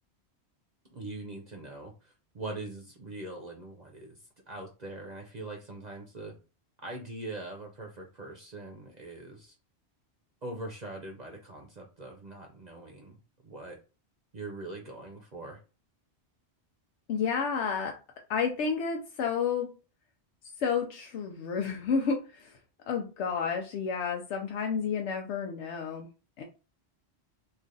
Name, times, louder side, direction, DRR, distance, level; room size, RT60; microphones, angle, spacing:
voice 1, 0.9-6.3 6.8-9.6 10.4-13.8 14.3-15.6, right 2 dB, 45° right, 1 dB, 0.7 m, -42 dB
voice 2, 17.1-17.9 18.3-19.7 20.6-22.5 22.9-26.1 26.4-26.5, left 6 dB, 90° left, 2 dB, 0.9 m, -30 dB
3.2 x 2.4 x 3.7 m, 0.32 s
omnidirectional pair, 1.1 m